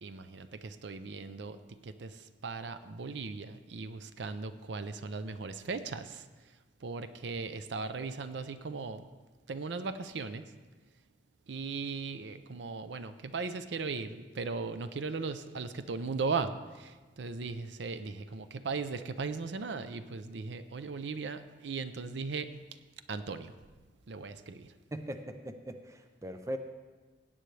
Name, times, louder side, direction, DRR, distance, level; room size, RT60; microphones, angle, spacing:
voice 1, 0.0-1.6 1.8-6.3 6.8-9.1 9.5-10.4 11.5-22.5 23.1-23.5 24.1-24.7, right 4 dB, 70° right, 11 dB, 0.5 m, -38 dB
voice 2, 24.9-26.6, equal, 15° right, 7 dB, 0.5 m, -40 dB
16.5 x 9.0 x 3.2 m, 1.3 s
head